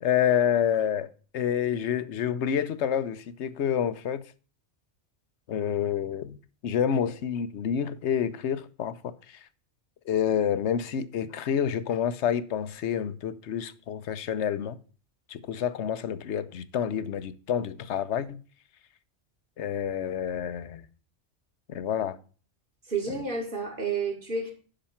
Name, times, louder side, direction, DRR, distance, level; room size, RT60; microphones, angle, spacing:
voice 1, 0.0-4.2 5.5-9.4 10.1-14.8 15.3-18.4 19.6-20.9 21.7-22.2, left 8 dB, 75° left, 1.0 m, -28 dB
voice 2, 22.9-24.5, right 4 dB, 45° right, 2.3 m, -30 dB
10.0 x 6.0 x 5.7 m
omnidirectional pair, 1.2 m